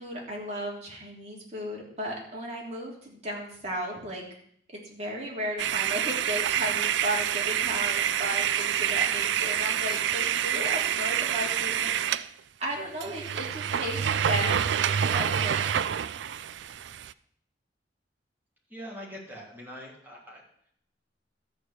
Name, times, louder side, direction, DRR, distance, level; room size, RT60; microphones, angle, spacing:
voice 1, 0.0-4.2 4.7-12.3 12.6-15.9, right 1 dB, 40° right, -2 dB, 3.3 m, -35 dB
sound 1, 5.6-12.3 12.7-12.8 13.0-17.1, right 9 dB, 80° right, 0.4 m, -27 dB
voice 2, 18.7-20.4, equal, 10° right, -4 dB, 3.2 m, -43 dB
13.0 x 4.7 x 8.2 m, 0.65 s
head